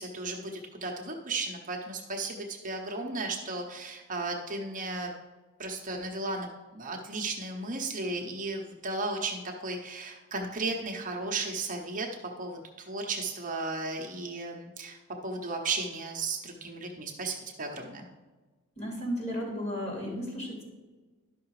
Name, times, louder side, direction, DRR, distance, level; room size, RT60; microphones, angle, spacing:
voice 1, 0.0-5.1 5.6-6.5 6.7-12.1 12.4-15.0 15.2-18.0, right 3 dB, 40° right, 1 dB, 0.9 m, -35 dB
voice 2, 18.8-20.6, equal, 30° left, -3 dB, 2.9 m, -34 dB
11.5 x 5.8 x 4.8 m, 1.3 s
head